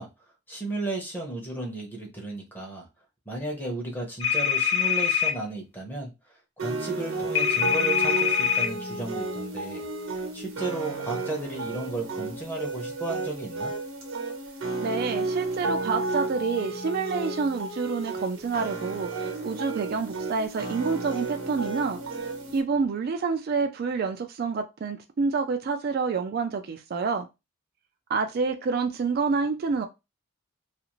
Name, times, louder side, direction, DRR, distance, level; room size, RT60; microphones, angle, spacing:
voice 1, 0.0-2.9 3.3-9.9 10.3-13.7, right 2 dB, 10° left, 0.7 m, -34 dB
sound 1, 4.2-5.3 7.4-8.7, left 8 dB, 70° left, 0.6 m, -24 dB
sound 2, 6.6-22.6, right 2 dB, 85° right, 0.9 m, -32 dB
voice 2, 14.8-22.0 22.5-27.3 28.1-29.8, right 4 dB, 50° right, 0.3 m, -28 dB
2.5 x 2.4 x 2.9 m
head